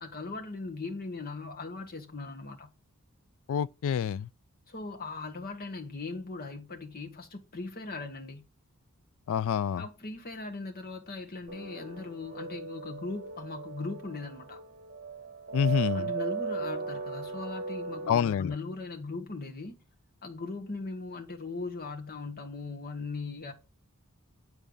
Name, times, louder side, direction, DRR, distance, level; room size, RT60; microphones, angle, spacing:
voice 1, 0.0-2.7 4.7-8.5 9.8-14.6 15.9-19.8 20.2-23.5, left 3 dB, 45° left, 1.1 m, -39 dB
voice 2, 3.5-4.3 9.3-9.8 15.5-16.1 18.1-18.5, left 7 dB, 65° left, 0.3 m, -27 dB
sound 1, 11.5-18.3, right 5 dB, 40° right, 1.5 m, -37 dB
8.5 x 4.5 x 3.8 m
head